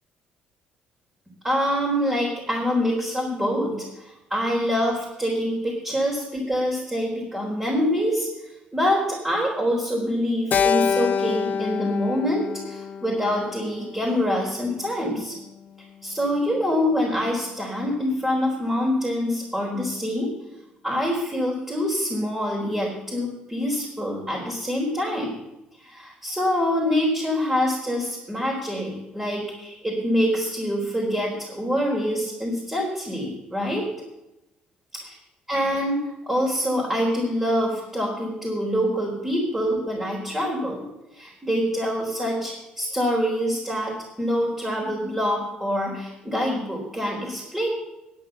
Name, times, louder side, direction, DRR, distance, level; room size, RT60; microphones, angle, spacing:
voice 1, 1.4-15.4 16.0-20.3 20.8-25.3 25.8-33.8 35.5-40.8 41.1-47.7, equal, 10° right, -3 dB, 4.1 m, -25 dB
Keyboard (musical), 10.5-14.9, left 7 dB, 50° left, 0.8 m, -27 dB
10.5 x 8.8 x 6.9 m, 0.93 s
hypercardioid pair, 60°, 4 cm